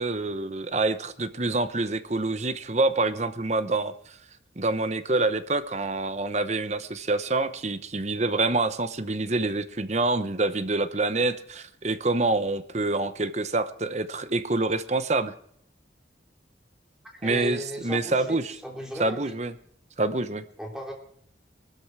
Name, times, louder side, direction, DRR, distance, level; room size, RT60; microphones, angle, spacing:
voice 1, 0.0-4.2 4.6-15.3 17.2-18.6 19.0-19.5 20.0-20.4, right 2 dB, 35° right, 12 dB, 0.9 m, -26 dB
voice 2, 17.1-19.4 20.6-20.9, equal, 5° right, -1 dB, 3.5 m, -36 dB
20.5 x 13.0 x 4.9 m, 0.65 s
head